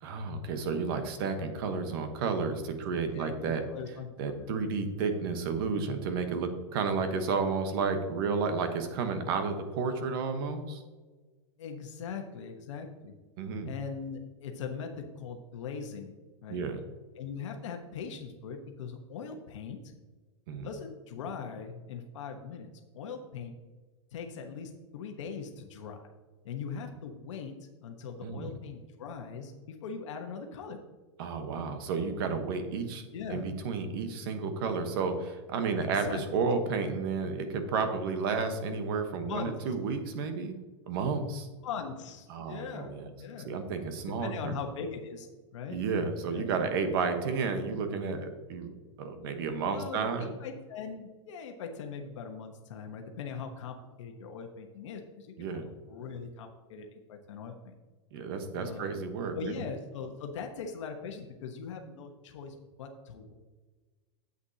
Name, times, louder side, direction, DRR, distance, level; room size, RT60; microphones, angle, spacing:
voice 1, 0.0-3.6 4.2-10.8 13.4-13.7 16.5-16.8 20.5-20.7 28.2-28.5 31.2-33.0 33.3-40.5 40.9-41.5 42.3-43.1 43.4-44.6 45.7-50.3 55.4-55.7 58.1-59.6, right 4 dB, 50° right, 7 dB, 1.1 m, -32 dB
voice 2, 3.1-4.5 11.6-13.1 13.6-16.1 16.4-16.6 17.1-19.9 20.6-23.5 24.1-26.0 26.4-27.5 27.8-30.8 33.1-33.4 35.9-36.2 36.5-36.6 39.2-39.5 41.6-42.9 43.2-43.6 44.2-45.3 45.5-45.8 46.3-46.5 49.7-55.6 55.9-57.8 58.5-58.9 59.3-63.3, left 6 dB, 70° left, 3 dB, 1.1 m, -40 dB
9.7 x 8.0 x 2.8 m, 1.3 s
supercardioid pair, 170°, 16 cm